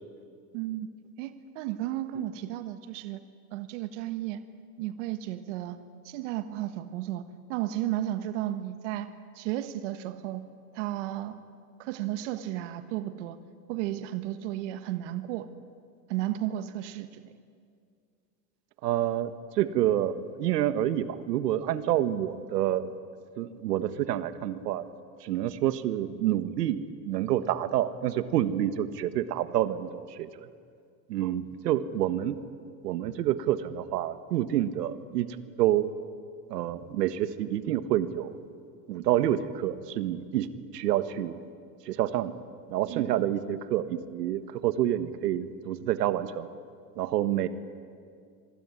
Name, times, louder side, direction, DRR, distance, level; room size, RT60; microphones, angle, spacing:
voice 1, 0.5-0.9 1.2-3.2 3.5-4.4 4.8-5.8 6.0-7.2 7.5-9.1 9.3-10.4 10.7-11.4 11.8-13.4 13.7-15.5 16.1-17.2 42.9-43.1, right 13 dB, 45° right, 10 dB, 1.5 m, -33 dB
voice 2, 18.8-22.9 23.4-24.8 25.2-30.3 31.1-32.4 32.8-35.3 35.6-35.9 36.5-38.3 38.9-40.5 40.7-41.3 41.8-42.3 42.7-46.5 47.0-47.5, right 12 dB, 70° right, 12 dB, 1.6 m, -28 dB
26.5 x 21.5 x 9.7 m, 2.2 s
supercardioid pair, 165°, 49 cm